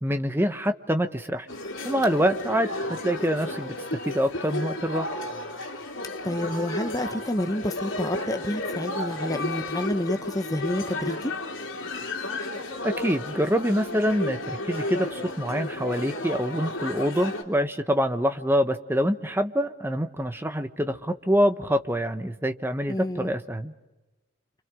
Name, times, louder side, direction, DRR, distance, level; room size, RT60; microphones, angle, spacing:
voice 1, 0.0-1.5 1.8-3.8 4.0-5.1 12.8-23.7, equal, 10° right, 8 dB, 1.1 m, -25 dB
sound 1, 1.5-17.4, left 2 dB, 80° left, 3.4 m, -33 dB
voice 2, 6.2-11.3 22.9-23.3, left 1 dB, 20° left, 8 dB, 1.0 m, -29 dB
30.0 x 26.0 x 6.3 m, 1.1 s
head